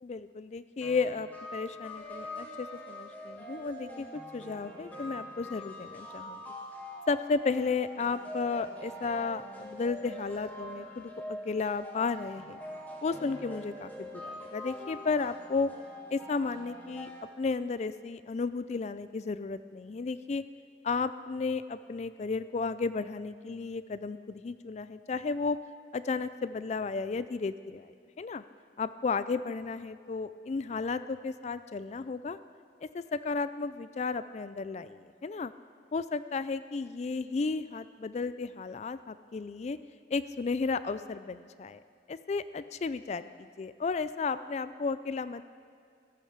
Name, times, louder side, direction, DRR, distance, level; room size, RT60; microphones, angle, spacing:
voice 1, 0.0-6.4 7.1-12.6 13.0-15.7 16.1-17.1 17.4-20.4 20.8-25.6 25.9-28.4 28.8-32.4 32.8-35.5 35.9-39.8 40.1-41.8 42.1-45.5, left 4 dB, 40° left, 14 dB, 0.4 m, -33 dB
sound 1, 0.8-17.2, equal, 10° left, 2.1 m, -44 dB
16.0 x 12.5 x 6.6 m, 2.3 s
head